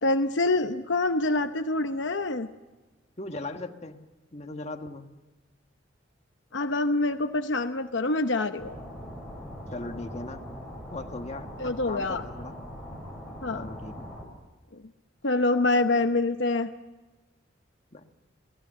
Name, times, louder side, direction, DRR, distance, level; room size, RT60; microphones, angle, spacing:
voice 1, 0.0-2.5 6.5-8.8 11.6-12.2 13.4-13.7 15.2-16.7, left 2 dB, 70° left, 7 dB, 0.9 m, -26 dB
voice 2, 3.2-4.1 4.3-5.1 9.7-10.5 10.9-12.6 13.5-14.1 17.9-18.1, left 2 dB, 35° left, 5 dB, 1.6 m, -38 dB
sound 1, 8.6-14.2, equal, 5° right, 7.1 m, -41 dB
29.5 x 19.0 x 7.5 m, 1.2 s
head